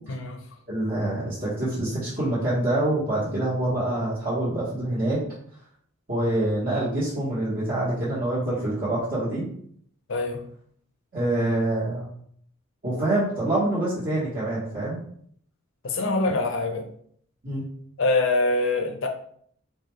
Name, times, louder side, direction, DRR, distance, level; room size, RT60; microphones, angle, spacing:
voice 1, 0.1-0.4 10.1-10.4 15.8-16.9 18.0-19.1, left 2 dB, 65° left, 4 dB, 0.5 m, -24 dB
voice 2, 0.7-5.2 6.1-9.5 11.1-12.1 12.8-15.0 17.4-17.6, right 1 dB, 45° right, -11 dB, 1.2 m, -26 dB
4.0 x 2.3 x 3.1 m, 0.64 s
head